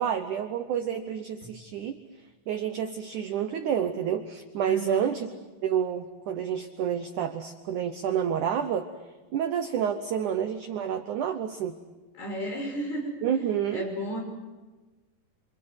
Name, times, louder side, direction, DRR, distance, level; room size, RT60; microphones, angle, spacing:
voice 1, 0.0-2.0 2.5-5.3 5.6-8.9 9.3-11.8 13.2-13.9, right 8 dB, 85° right, 7 dB, 1.7 m, -29 dB
voice 2, 4.7-5.1 12.1-13.1 13.7-14.2, equal, 65° left, 0 dB, 8.4 m, -33 dB
26.5 x 26.5 x 7.9 m, 1.2 s
omnidirectional pair, 5.1 m